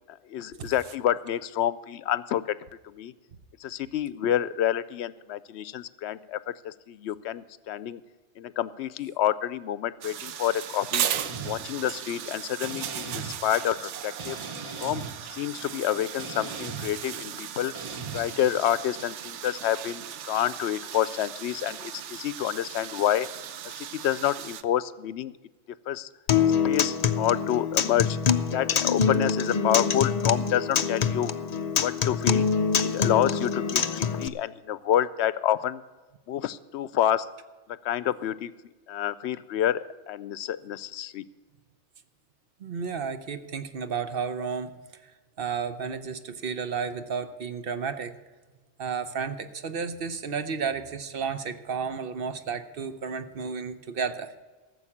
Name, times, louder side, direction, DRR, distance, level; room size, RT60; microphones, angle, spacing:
voice 1, 0.1-2.6 2.8-3.1 3.6-8.0 8.4-11.1 11.4-14.4 14.8-17.7 18.1-23.3 23.6-25.3 25.9-26.1 26.6-28.2 28.5-31.3 31.8-32.5 32.9-35.8 36.3-37.3 37.7-38.5 38.9-41.2, left 11 dB, 70° left, 17 dB, 0.8 m, -28 dB
sound 1, 10.0-24.6, right 10 dB, 80° right, 1.0 m, -37 dB
sound 2, 11.1-11.6 12.6-13.4 14.2-15.1 16.2-16.9 17.7-18.2, right 4 dB, 30° right, 0.9 m, -38 dB
Acoustic guitar, 26.3-34.3, left 6 dB, 50° left, 0.5 m, -25 dB
voice 2, 42.6-45.0 45.4-48.1 48.8-54.4, right 6 dB, 55° right, 10 dB, 1.0 m, -32 dB
14.0 x 7.1 x 8.6 m, 1.2 s
omnidirectional pair, 1.2 m